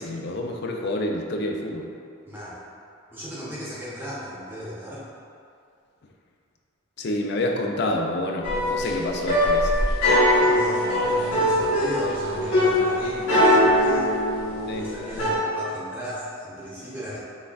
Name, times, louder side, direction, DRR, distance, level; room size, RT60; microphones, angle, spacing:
voice 1, 0.0-1.9 7.0-9.7 14.7-14.9, left 1 dB, 55° left, 1 dB, 0.4 m, -28 dB
voice 2, 2.3-2.6 3.1-5.1 10.1-14.1 14.7-17.2, right 1 dB, 10° right, -9 dB, 0.9 m, -36 dB
sound 1, 8.4-15.4, left 1 dB, 85° left, 1.4 m, -21 dB
6.2 x 3.5 x 2.4 m, 2.3 s
head